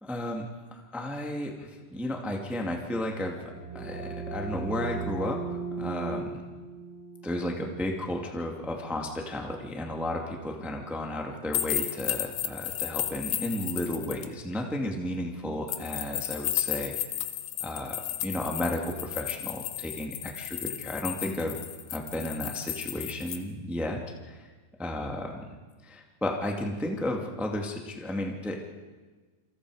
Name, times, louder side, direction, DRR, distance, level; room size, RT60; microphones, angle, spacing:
voice 1, 0.0-6.4 7.2-16.9 17.6-21.5 21.9-24.5 24.8-25.4 25.8-28.6, left 1 dB, ahead, 1 dB, 0.4 m, -33 dB
sound 1, 3.3-8.7, right 4 dB, 40° right, 5.7 m, -37 dB
sound 2, 11.5-14.3 15.7-23.4, left 12 dB, 65° left, 2.4 m, -33 dB
28.5 x 25.5 x 5.0 m, 1.3 s
omnidirectional pair, 4.8 m